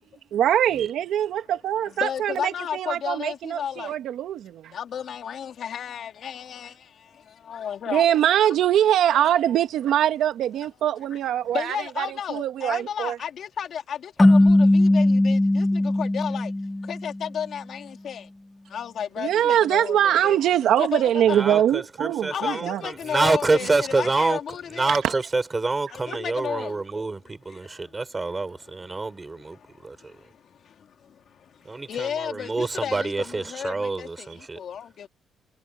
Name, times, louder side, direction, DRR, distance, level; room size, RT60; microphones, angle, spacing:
voice 1, 0.3-4.7 7.9-13.2 19.2-22.8 24.9-25.0, right 11 dB, 80° right, 1.5 m, -23 dB
voice 2, 2.0-3.9 4.7-6.7 7.5-8.2 11.5-14.0 14.3-15.7 16.0-16.5 16.9-18.2 18.7-20.4 20.8-21.6 22.3-24.9 25.9-26.7 31.9-34.1 34.6-35.1, left 8 dB, 65° left, 2.2 m, -32 dB
sound 1, 14.2-17.4, left 1 dB, 10° left, 0.5 m, -19 dB
voice 3, 21.3-24.4 24.7-30.1 31.6-34.6, right 3 dB, 25° right, 5.5 m, -27 dB
cardioid pair, 90°, 0 cm